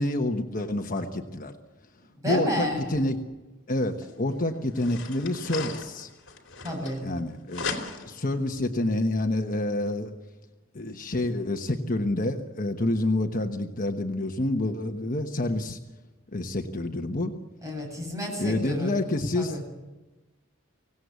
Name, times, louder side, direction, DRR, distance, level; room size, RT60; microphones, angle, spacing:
voice 1, 0.0-1.5 2.2-3.2 3.7-6.1 7.0-7.7 8.0-10.1 10.7-15.8 16.3-17.3 18.4-19.8, left 1 dB, 40° left, 4 dB, 1.2 m, -28 dB
voice 2, 2.2-2.8 6.6-7.1 17.6-18.9 19.4-19.6, equal, 15° right, 0 dB, 7.7 m, -30 dB
sound 1, 4.0-4.1 4.7-7.2 7.5-8.3, left 4 dB, 60° left, 3.1 m, -36 dB
24.0 x 17.5 x 8.2 m, 1.1 s
head